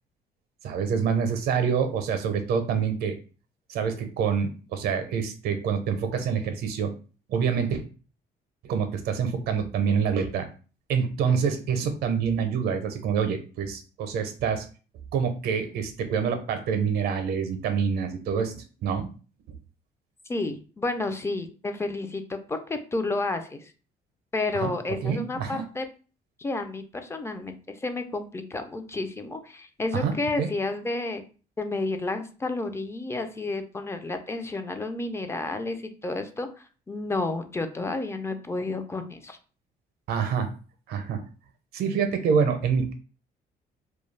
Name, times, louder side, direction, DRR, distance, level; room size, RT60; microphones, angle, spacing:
voice 1, 0.6-3.2 3.7-6.9 7.3-7.8 8.6-10.5 10.9-14.7 15.1-19.1 24.5-24.7 25.0-25.6 29.9-30.1 30.4-30.5 40.1-40.5 40.9-41.2 41.7-42.9, right 6 dB, 70° right, 8 dB, 0.5 m, -26 dB
voice 2, 20.3-23.7 24.3-25.9 26.4-31.2 31.6-39.4, left 2 dB, 15° left, 7 dB, 0.4 m, -31 dB
2.3 x 2.2 x 3.1 m, 0.37 s
cardioid pair, 110°, 17 cm